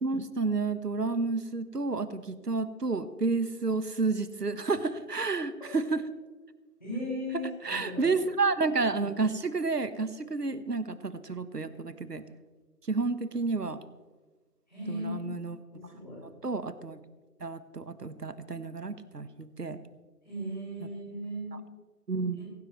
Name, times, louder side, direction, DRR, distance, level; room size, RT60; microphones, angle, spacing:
voice 1, 0.0-6.1 7.6-12.2 12.9-13.8 14.9-15.6 16.4-17.0 17.4-19.8 22.1-22.4, right 3 dB, 80° right, 14 dB, 1.2 m, -30 dB
voice 2, 6.8-8.1 14.7-15.3 15.7-16.2 20.2-21.6 22.4-22.5, equal, 30° left, -6 dB, 5.7 m, -37 dB
17.5 x 15.5 x 3.1 m, 1.3 s
figure-of-eight pair, 180°, 47 cm